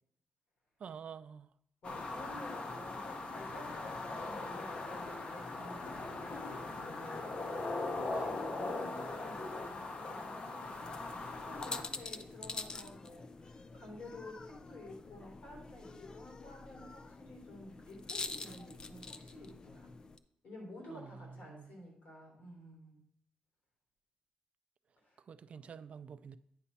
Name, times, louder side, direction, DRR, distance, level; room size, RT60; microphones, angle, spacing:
voice 1, 0.8-1.5 8.1-8.2 20.9-21.8 25.3-26.4, right 6 dB, 55° right, 0.3 m, -49 dB
voice 2, 1.8-19.9 20.4-23.1 25.0-25.2, left 1 dB, 85° left, 3.6 m, -52 dB
sound 1, 1.8-11.8, left 3 dB, 45° left, 0.9 m, -40 dB
sound 2, 10.7-20.2, left 3 dB, 30° left, 0.4 m, -46 dB
9.7 x 4.2 x 5.6 m
wide cardioid pair, 170°, 3 cm